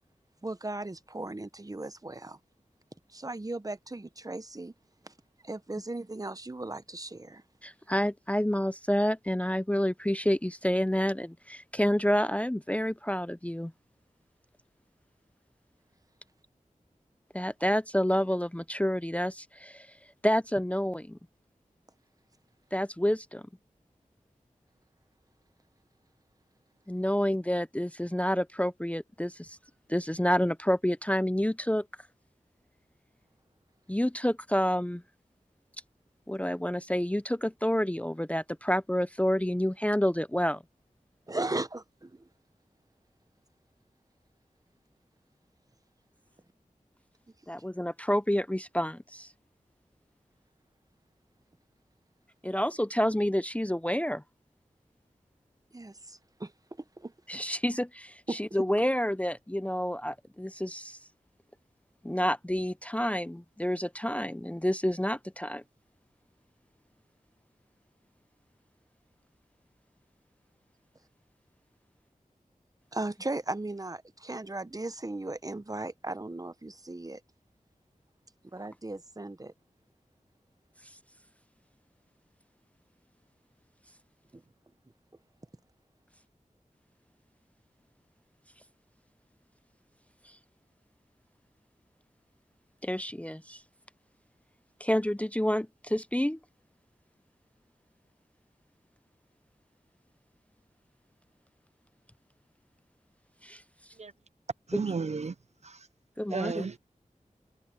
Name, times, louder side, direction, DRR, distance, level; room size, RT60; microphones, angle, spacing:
voice 1, 0.4-2.4 3.1-4.7 5.0-5.1 5.4-7.4 41.3-42.3 55.7-56.5 57.0-57.1 58.3-58.4 72.9-77.2 78.5-79.5 84.3-84.4, right 2 dB, 25° right, 0.9 m, -37 dB
voice 2, 7.6-13.7 17.3-19.9 20.2-21.2 22.7-23.4 26.9-29.6 29.9-31.8 33.9-35.0 36.3-40.6 47.5-49.3 52.4-54.2 57.3-61.0 62.0-65.6 92.8-93.6 94.8-96.4 103.4-103.6 104.7-104.8 106.2-106.7, equal, 10° left, 0.6 m, -29 dB
voice 3, 104.7-105.3 105.6-105.8 106.3-106.8, right 5 dB, 55° right, 0.5 m, -33 dB
wide cardioid pair, 70°, 14 cm